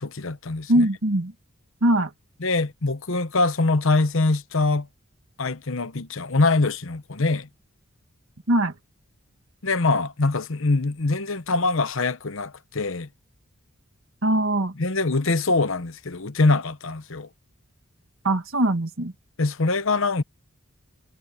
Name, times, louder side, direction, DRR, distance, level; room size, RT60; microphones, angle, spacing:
voice 1, 0.0-0.9 2.4-4.9 5.4-7.5 9.6-13.1 14.8-17.3 19.4-20.2, left 3 dB, 65° left, 1.0 m, -23 dB
voice 2, 0.7-1.3 1.8-2.1 8.5-8.7 14.2-14.7 18.2-19.1, right 1 dB, 65° right, 1.8 m, -21 dB
head